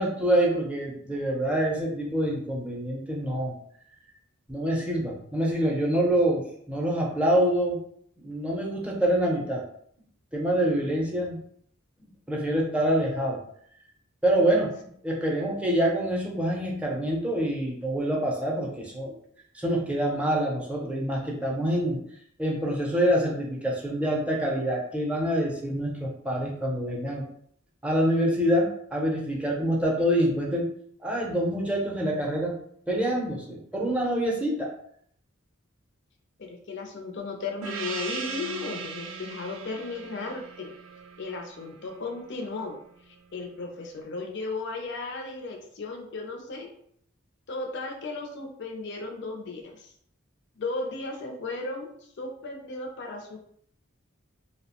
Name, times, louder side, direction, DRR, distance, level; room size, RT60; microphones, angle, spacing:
voice 1, 0.0-3.6 4.5-7.8 8.2-9.6 10.3-11.4 12.3-13.4 14.2-19.1 19.5-22.0 22.4-27.2 27.8-30.7 31.0-32.6 32.9-34.7, right 1 dB, 5° right, -2 dB, 0.6 m, -26 dB
voice 2, 36.4-40.7 41.2-42.7 43.0-46.7 47.5-49.9 50.6-51.9 52.2-53.4, left 3 dB, 60° left, 1 dB, 0.5 m, -35 dB
Gong, 37.6-42.6, right 5 dB, 80° right, 0.4 m, -38 dB
2.8 x 2.1 x 2.8 m, 0.65 s
head